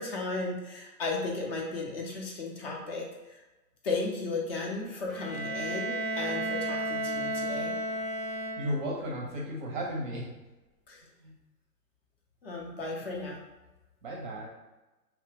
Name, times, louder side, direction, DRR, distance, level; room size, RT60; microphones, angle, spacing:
voice 1, 0.0-3.1 3.8-7.7 10.9-11.0 12.4-13.4, left 3 dB, 40° left, -1 dB, 0.6 m, -35 dB
Bowed string instrument, 5.1-9.0, right 1 dB, 10° left, 0.8 m, -33 dB
voice 2, 8.5-10.3 11.2-11.3 14.0-14.5, equal, 35° right, -2 dB, 0.5 m, -34 dB
2.8 x 2.1 x 3.2 m, 1.1 s
hypercardioid pair, 125°, 49 cm